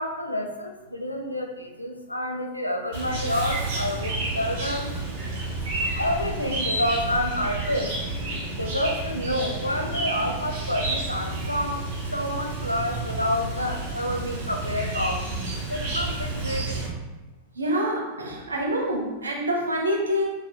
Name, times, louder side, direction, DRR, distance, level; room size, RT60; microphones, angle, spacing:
voice 1, 0.0-4.9 6.0-7.9 8.5-15.2 15.7-16.8, left 1 dB, 85° left, 3 dB, 0.4 m, -28 dB
Chirp tweet, 2.9-16.9, right 2 dB, 50° right, 1.4 m, -30 dB
voice 2, 17.6-20.3, equal, 75° right, 0 dB, 0.6 m, -26 dB
3.6 x 3.2 x 2.3 m, 1.1 s
figure-of-eight pair, 90°, 0 cm